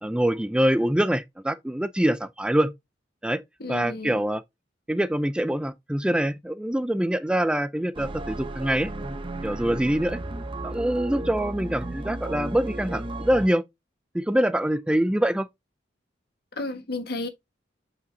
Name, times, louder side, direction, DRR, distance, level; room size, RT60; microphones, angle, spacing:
voice 1, 0.0-2.7 3.2-3.4 3.7-4.4 4.9-8.9 9.4-10.2 10.6-13.6 14.1-15.5, right 1 dB, 5° right, 0.3 m, -24 dB
voice 2, 3.6-4.2 16.6-17.3, left 2 dB, 60° left, 1.4 m, -32 dB
sound 1, 7.9-13.5, right 2 dB, 30° right, 0.8 m, -34 dB
8.3 x 5.0 x 2.7 m
head